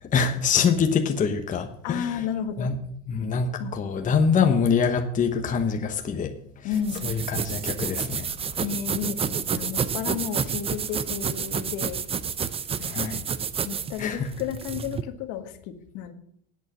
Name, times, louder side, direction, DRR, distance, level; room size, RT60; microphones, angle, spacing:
voice 1, 0.0-2.2 2.6-2.7 3.1-6.3 6.6-6.7 7.0-8.3 12.8-13.2 14.0-14.3, left 6 dB, 20° left, 4 dB, 1.1 m, -24 dB
voice 2, 1.8-2.7 3.6-3.8 6.6-7.1 8.6-12.0 12.8-13.1 13.6-16.1, left 8 dB, 55° left, 7 dB, 1.6 m, -32 dB
sound 1, 6.7-15.0, right 7 dB, 15° right, 0.5 m, -30 dB
11.0 x 8.5 x 6.2 m, 0.73 s
supercardioid pair, 120°, 35 cm